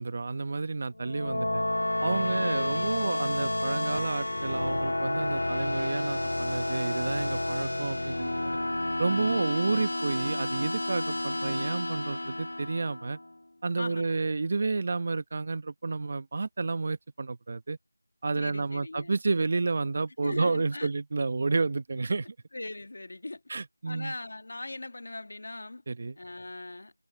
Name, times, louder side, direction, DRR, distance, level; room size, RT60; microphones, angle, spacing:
voice 1, 0.0-1.6 2.0-8.6 9.0-13.2 13.6-17.8 18.2-22.3 23.5-24.1 25.9-26.2, right 3 dB, 30° right, 1.1 m, -30 dB
sound 1, 0.9-13.3, left 1 dB, 75° left, 2.4 m, -30 dB
voice 2, 2.3-3.2 9.3-9.7 13.8-14.2 18.4-19.1 20.2-20.9 22.5-23.4 23.9-25.8 26.2-26.9, left 2 dB, 50° left, 1.8 m, -40 dB
figure-of-eight pair, 175°, 0 cm